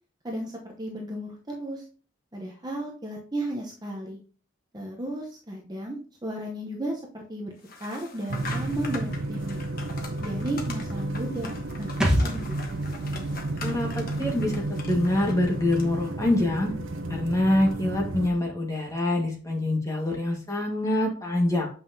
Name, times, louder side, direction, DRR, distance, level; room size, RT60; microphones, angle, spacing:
voice 1, 0.2-1.8 2.3-4.2 4.7-9.6 10.2-11.5 11.8-12.8, right 1 dB, 20° right, -1 dB, 0.9 m, -34 dB
sound 1, 7.6-16.1, left 4 dB, 45° left, 1.3 m, -43 dB
sound 2, 8.3-18.3, right 2 dB, 80° right, 0.8 m, -32 dB
sound 3, 12.0-15.5 15.8-15.9, equal, 5° right, 1.3 m, -30 dB
voice 2, 13.6-16.7 17.1-21.7, left 1 dB, 15° left, 0 dB, 1.6 m, -25 dB
7.6 x 5.6 x 2.8 m, 0.40 s
head